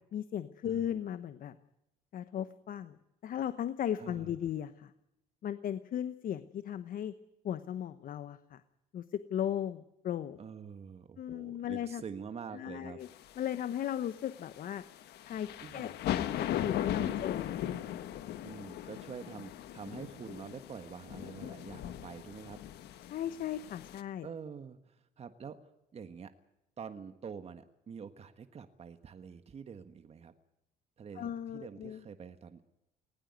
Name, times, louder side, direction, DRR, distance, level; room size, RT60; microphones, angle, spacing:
voice 1, 0.1-1.5 2.1-3.0 3.2-4.9 5.4-7.1 7.4-8.6 8.9-10.4 11.2-12.0 12.5-13.1 13.4-14.8 15.2-15.9 16.4-17.8 23.1-24.3 31.2-32.0, left 10 dB, 55° left, 12 dB, 1.0 m, -36 dB
voice 2, 4.0-4.4 10.4-13.0 15.6-15.9 17.0-17.3 18.4-22.6 24.2-25.6 25.9-26.3 26.8-30.3 31.0-32.6, right 6 dB, 40° right, 9 dB, 1.5 m, -46 dB
sound 1, 13.1-24.0, left 12 dB, 75° left, 1.4 m, -38 dB
19.5 x 17.5 x 9.4 m, 0.87 s
cardioid pair, 110°, 17 cm